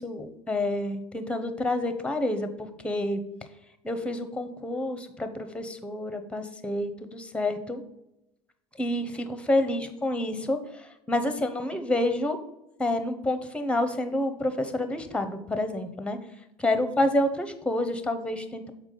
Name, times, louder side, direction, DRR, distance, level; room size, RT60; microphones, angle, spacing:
voice 1, 0.0-3.2 3.8-7.8 8.8-12.4 12.8-16.2 16.6-18.7, left 1 dB, 5° left, 9 dB, 0.8 m, -28 dB
7.2 x 4.7 x 3.8 m, 0.89 s
figure-of-eight pair, 75°, 19 cm